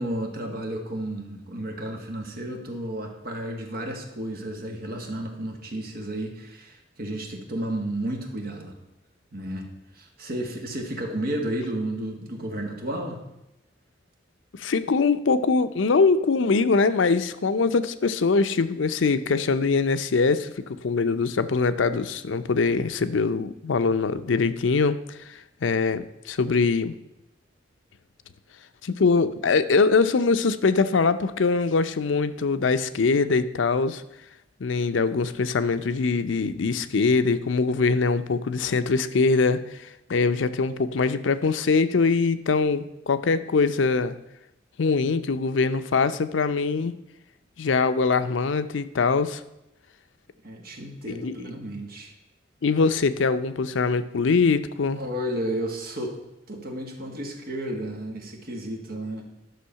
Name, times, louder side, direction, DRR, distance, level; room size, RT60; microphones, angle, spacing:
voice 1, 0.0-8.7 9.3-9.7 9.9-13.2 50.4-52.1 55.0-56.2 56.5-59.3, right 1 dB, 55° right, 2 dB, 1.8 m, -32 dB
voice 2, 14.5-26.9 28.8-34.0 34.6-39.6 40.1-44.2 44.8-46.9 47.6-49.4 51.2-51.3 52.6-55.0, left 4 dB, 80° left, 12 dB, 0.5 m, -23 dB
11.5 x 6.3 x 5.7 m, 0.89 s
head